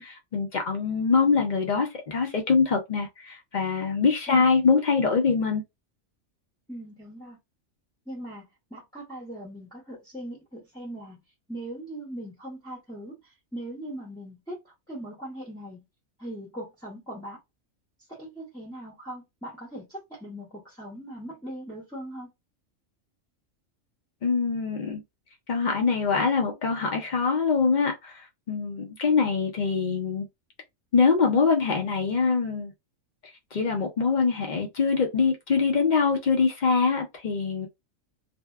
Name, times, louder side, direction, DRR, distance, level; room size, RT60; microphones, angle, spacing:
voice 1, 0.0-5.6 24.2-25.0 25.5-30.3 30.9-32.7 33.5-37.7, left 5 dB, 50° left, 0.5 m, -24 dB
voice 2, 6.7-7.4 8.1-11.2 11.5-15.8 16.2-17.4 18.1-22.3, right 1 dB, 5° left, 0.6 m, -40 dB
2.6 x 2.1 x 2.3 m
omnidirectional pair, 1.4 m